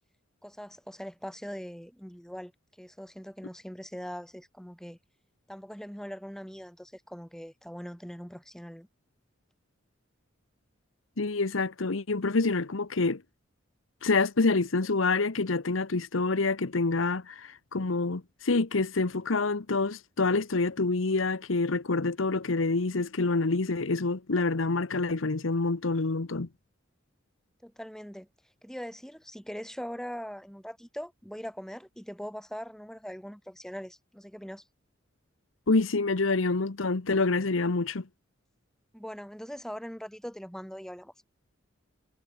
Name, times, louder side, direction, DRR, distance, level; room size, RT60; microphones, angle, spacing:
voice 1, 0.4-2.5 2.8-5.0 5.5-8.9 27.6-28.3 28.6-34.6 38.9-41.1, equal, 5° left, 6.7 m, -41 dB
voice 2, 11.2-13.2 14.0-26.5 35.7-38.1, left 3 dB, 85° left, 1.0 m, -27 dB
head